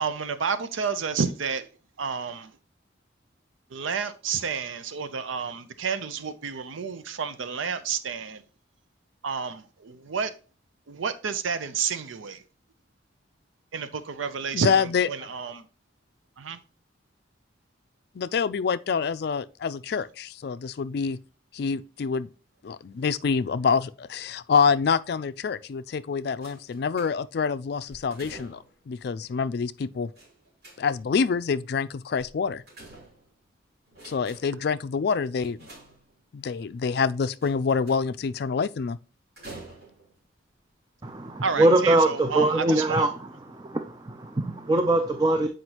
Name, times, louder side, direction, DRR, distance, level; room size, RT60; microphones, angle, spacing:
voice 1, 0.0-1.7 2.0-2.5 3.7-8.4 9.2-10.3 10.9-12.4 13.7-15.7 16.4-16.6 41.4-43.1, right 6 dB, 90° right, 0.6 m, -30 dB
voice 2, 14.5-15.1 18.1-21.2 21.5-22.3 22.6-30.1 30.8-32.6 34.0-35.6 36.3-39.0, left 5 dB, 55° left, 0.3 m, -26 dB
sound 1, 26.4-27.4 27.9-28.8 30.2-31.2 32.2-33.5 33.9-34.7 35.4-36.4 37.4-38.2 39.4-40.2 41.0-41.1 41.5-41.6, right 2 dB, 55° right, 3.5 m, -48 dB
voice 3, 41.0-43.1 43.5-45.5, right 2 dB, 20° right, 0.4 m, -22 dB
7.9 x 5.0 x 2.9 m
head